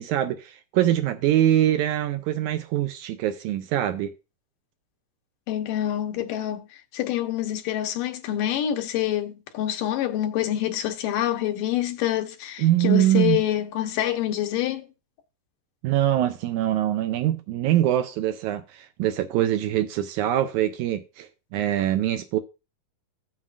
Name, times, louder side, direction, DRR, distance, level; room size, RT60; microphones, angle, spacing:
voice 1, 0.0-4.1 12.6-13.4 15.8-22.4, right 12 dB, 80° right, 1.8 m, -23 dB
voice 2, 5.5-14.9, left 12 dB, 85° left, 2.6 m, -26 dB
15.0 x 7.4 x 2.4 m
omnidirectional pair, 3.8 m